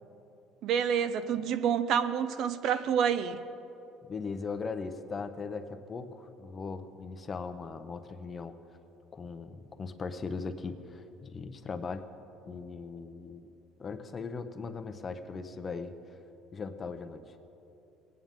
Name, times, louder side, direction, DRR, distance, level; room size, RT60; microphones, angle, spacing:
voice 1, 0.6-3.4, right 8 dB, 55° right, 13 dB, 0.5 m, -28 dB
voice 2, 4.0-8.5 9.1-12.0 12.5-13.5 13.8-15.9 16.5-17.2, left 4 dB, 25° left, 9 dB, 0.6 m, -39 dB
19.5 x 9.3 x 3.6 m, 2.9 s
cardioid pair, 145°, 0 cm